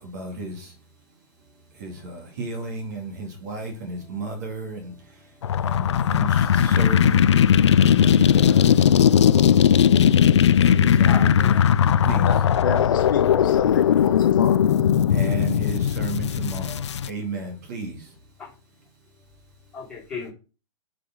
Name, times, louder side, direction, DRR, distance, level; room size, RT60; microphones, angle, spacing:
voice 1, 0.0-0.7 1.8-4.9 5.6-7.3 8.0-8.8 10.6-11.6 12.0-12.4 15.1-18.0, right 3 dB, 35° right, 2 dB, 2.6 m, -33 dB
sound 1, 5.4-17.1, left 9 dB, 60° left, 0.5 m, -18 dB
voice 2, 11.0-11.6 12.6-12.8 18.4-18.5 19.7-20.3, left 5 dB, 5° left, -6 dB, 3.2 m, -35 dB
voice 3, 12.2-14.6, left 6 dB, 40° left, 3 dB, 1.7 m, -30 dB
7.2 x 5.0 x 5.4 m, 0.35 s
hypercardioid pair, 180°, 16 cm